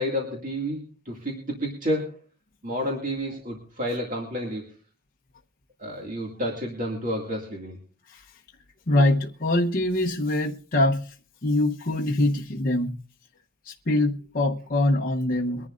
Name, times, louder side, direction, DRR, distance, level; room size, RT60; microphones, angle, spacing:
voice 1, 0.0-2.2 2.6-4.7 5.8-7.8, equal, 35° right, 2.3 m, -30 dB
voice 2, 8.9-11.1 11.4-12.9 13.6-15.7, left 1 dB, 40° left, 0.9 m, -24 dB
23.5 x 11.0 x 2.5 m
head